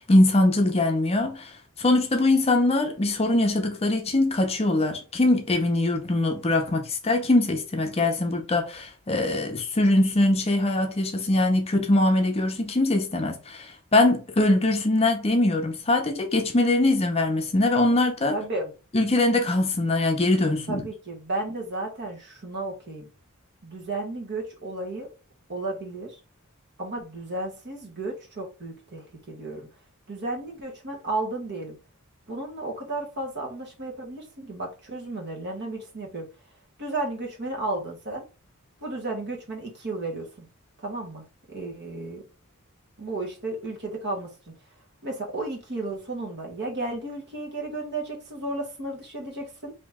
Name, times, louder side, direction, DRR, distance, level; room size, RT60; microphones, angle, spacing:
voice 1, 0.1-1.5 1.8-18.4 18.9-20.8, left 2 dB, 30° left, 0.6 m, -22 dB
voice 2, 18.3-18.7 20.7-23.1 23.6-25.1 25.5-26.1 26.8-29.7 30.1-31.7 32.3-36.3 36.8-38.2 38.8-40.4 40.8-42.2 43.0-44.5 45.0-49.7, right 2 dB, 50° right, 1.2 m, -33 dB
3.0 x 2.7 x 3.5 m
head